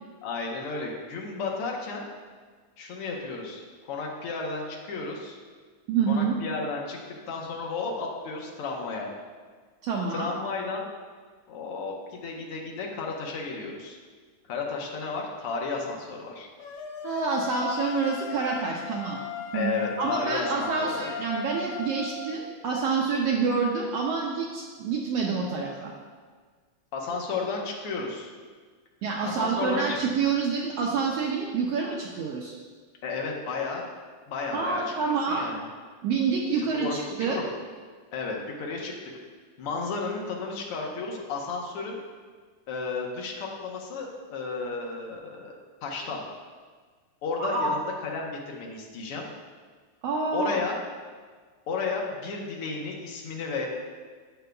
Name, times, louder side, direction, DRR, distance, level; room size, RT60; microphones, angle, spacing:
voice 1, 0.2-2.1 2.8-5.4 6.1-7.0 7.3-9.1 10.1-10.8 11.5-14.0 14.5-16.5 19.5-21.1 26.9-28.3 29.2-30.0 33.0-33.8 34.3-35.6 36.6-37.5 38.1-38.9 39.6-42.0 42.7-45.5 45.8-46.2 47.2-49.2 50.3-50.8 51.7-53.7, left 4 dB, 65° left, -1 dB, 1.6 m, -33 dB
voice 2, 5.9-6.3 9.8-10.3 17.0-19.2 19.5-19.7 20.0-25.9 29.0-32.6 34.5-35.5 36.0-37.4 47.4-47.7 50.0-50.6, right 5 dB, 75° right, -1 dB, 1.5 m, -27 dB
sound 1, 16.6-22.4, left 5 dB, 80° left, 2.1 m, -37 dB
9.0 x 7.8 x 2.3 m, 1.5 s
omnidirectional pair, 3.3 m